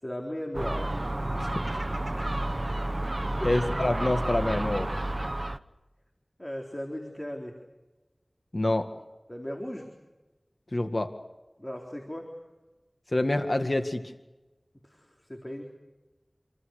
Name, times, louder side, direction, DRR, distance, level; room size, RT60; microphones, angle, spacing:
voice 1, 0.0-0.9 2.1-2.4 5.2-5.3 6.4-7.6 9.3-9.9 11.6-12.3 14.8-15.6, equal, 25° left, 1 dB, 4.0 m, -37 dB
Gull seagull, 0.5-5.6, right 1 dB, 45° right, 0.9 m, -30 dB
voice 2, 3.4-4.9 8.5-8.9 10.7-11.1 13.1-14.0, left 1 dB, 55° left, 7 dB, 1.9 m, -26 dB
28.0 x 25.0 x 6.6 m, 1.1 s
wide cardioid pair, 45°, 0 cm